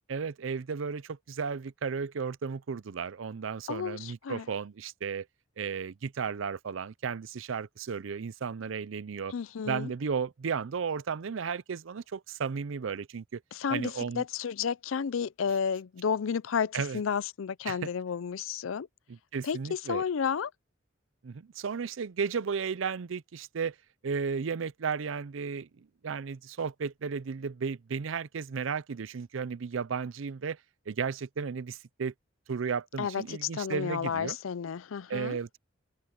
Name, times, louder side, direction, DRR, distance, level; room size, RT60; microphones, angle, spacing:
voice 1, 0.1-5.3 5.6-9.3 9.7-13.4 13.7-14.2 16.7-17.0 17.7-17.8 19.1-20.0 21.2-23.7 24.0-30.6 30.9-32.1 32.5-34.4 35.1-35.6, right 6 dB, 75° right, 0.5 m, -34 dB
voice 2, 3.7-4.5 9.3-9.9 13.5-18.9 19.4-20.5 33.0-35.4, left 6 dB, 85° left, 0.5 m, -32 dB
head